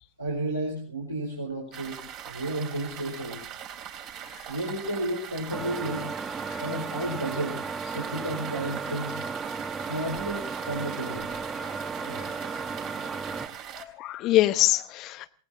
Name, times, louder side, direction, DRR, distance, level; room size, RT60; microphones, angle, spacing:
voice 1, 0.2-3.4 4.5-6.1 6.6-7.6 7.9-9.2 9.8-11.3 12.0-12.2, right 1 dB, 85° right, -3 dB, 4.9 m, -32 dB
sound 1, 1.7-13.8, right 9 dB, 40° right, 3.1 m, -41 dB
sound 2, 5.5-13.5, right 4 dB, 15° right, 1.2 m, -35 dB
voice 2, 13.8-15.3, left 15 dB, 40° left, 11 dB, 0.9 m, -25 dB
28.0 x 18.5 x 2.7 m, 0.35 s
figure-of-eight pair, 90°, 0 cm